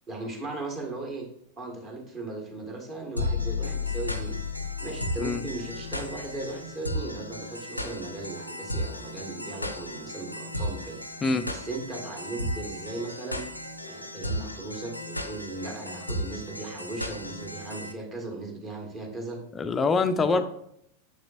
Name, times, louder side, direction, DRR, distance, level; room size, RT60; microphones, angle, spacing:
voice 1, 0.1-1.2 1.6-4.4 4.8-11.0 11.4-13.5 13.8-19.4 20.3-20.4, right 2 dB, 25° right, 1 dB, 1.6 m, -37 dB
sound 1, 3.2-17.9, left 2 dB, 85° left, 0.5 m, -34 dB
voice 2, 19.5-20.4, left 4 dB, 20° left, 10 dB, 0.4 m, -24 dB
6.7 x 6.1 x 2.5 m, 0.71 s
figure-of-eight pair, 90°, 0 cm